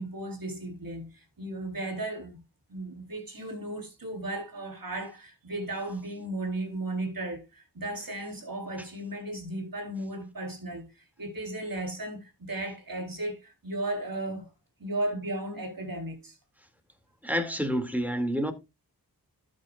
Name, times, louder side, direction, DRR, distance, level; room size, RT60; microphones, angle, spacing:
voice 1, 0.0-2.4 2.7-14.5 14.8-16.4, right 1 dB, 60° right, 3.9 m, -35 dB
voice 2, 17.2-18.5, equal, 5° right, 2.4 m, -28 dB
13.0 x 8.3 x 2.4 m
cardioid pair, 45°, 39 cm